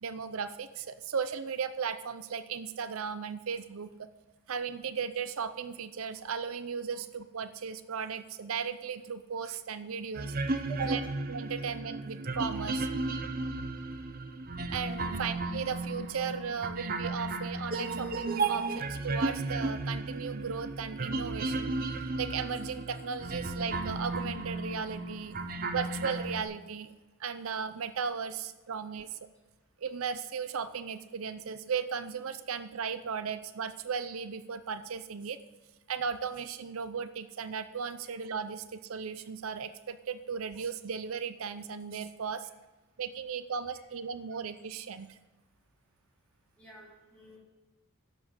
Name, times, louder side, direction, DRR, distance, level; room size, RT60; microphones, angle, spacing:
voice 1, 0.0-4.1 4.5-10.3 10.8-11.0 11.3-12.9 14.7-21.7 22.0-25.3 25.7-26.9 27.2-29.2 29.8-35.4 35.9-42.5 43.0-45.2, right 6 dB, 80° right, 13 dB, 0.6 m, -36 dB
sound 1, 10.1-26.4, right 3 dB, 45° right, 0.8 m, -34 dB
voice 2, 46.6-47.4, left 1 dB, 5° left, -5 dB, 3.6 m, -46 dB
11.5 x 7.3 x 7.5 m, 1.1 s
head